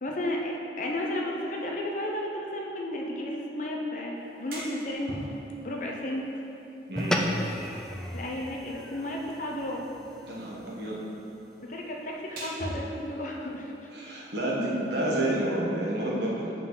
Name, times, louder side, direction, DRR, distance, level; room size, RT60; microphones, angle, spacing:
voice 1, 0.0-5.1 5.6-6.3 7.3-7.5 8.1-9.8 11.6-13.9, left 1 dB, 45° left, -1 dB, 0.8 m, -33 dB
sound 1, 4.2-15.4, equal, 55° right, 1.7 m, -46 dB
sound 2, 7.0-11.6, equal, 5° left, 0.4 m, -35 dB
voice 2, 10.3-11.0 13.9-16.5, right 1 dB, 70° right, -5 dB, 1.5 m, -29 dB
7.3 x 5.4 x 4.0 m, 2.8 s
head